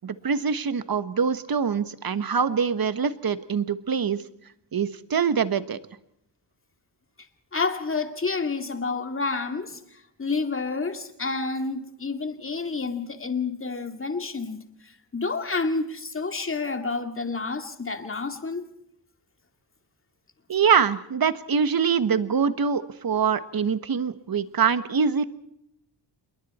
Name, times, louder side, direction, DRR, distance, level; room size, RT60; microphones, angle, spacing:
voice 1, 0.0-4.2 4.7-5.8 20.5-25.2, right 6 dB, 50° right, 13 dB, 1.4 m, -24 dB
voice 2, 7.5-18.7, left 4 dB, 30° left, 7 dB, 2.3 m, -29 dB
27.5 x 22.5 x 4.3 m, 0.75 s
wide cardioid pair, 120°, 45 cm